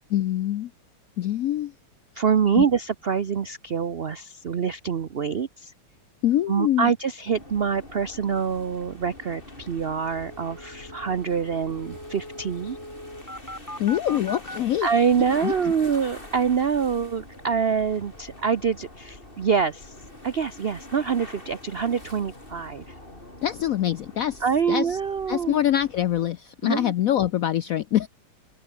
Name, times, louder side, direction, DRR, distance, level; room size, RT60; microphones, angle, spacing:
voice 1, 0.1-0.7 1.2-1.7 2.6-2.7 6.2-6.9 13.8-14.9 15.4-15.5 23.4-25.0 25.3-28.1, left 12 dB, 85° left, 0.7 m, -24 dB
voice 2, 2.1-5.7 6.5-12.8 14.8-19.9 20.2-22.9 24.4-25.6 26.6-26.9, right 6 dB, 65° right, 0.5 m, -25 dB
sound 1, 7.3-26.3, left 1 dB, 25° left, 5.8 m, -45 dB
sound 2, 9.7-9.8 10.0-14.6, left 1 dB, 10° left, 4.8 m, -41 dB
open air
omnidirectional pair, 2.2 m